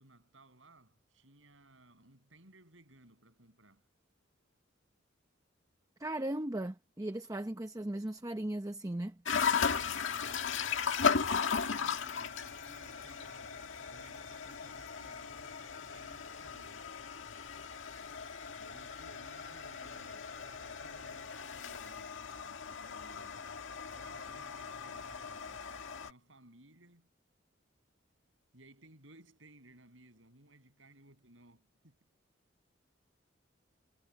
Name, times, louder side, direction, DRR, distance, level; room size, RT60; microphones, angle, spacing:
voice 1, 0.0-3.9 9.6-16.9 18.6-22.2 22.7-27.1 28.5-32.1, right 2 dB, 80° right, 7.9 m, -60 dB
voice 2, 6.0-9.2, right 1 dB, 20° right, 0.8 m, -37 dB
sound 1, 9.3-26.1, left 6 dB, 75° left, 1.8 m, -37 dB
head